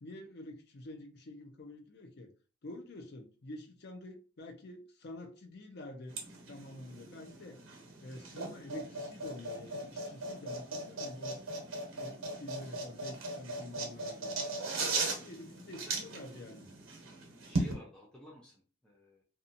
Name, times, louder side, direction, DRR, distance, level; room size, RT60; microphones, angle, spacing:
voice 1, 0.0-2.3 2.6-6.2 6.5-7.6 8.0-11.4 11.9-14.3 15.0-16.7, left 1 dB, 55° left, 0.5 m, -48 dB
sound 1, 6.1-17.7, right 2 dB, 75° right, 0.8 m, -38 dB
voice 2, 17.5-19.2, equal, 5° left, 0.5 m, -53 dB
2.8 x 2.3 x 2.5 m
head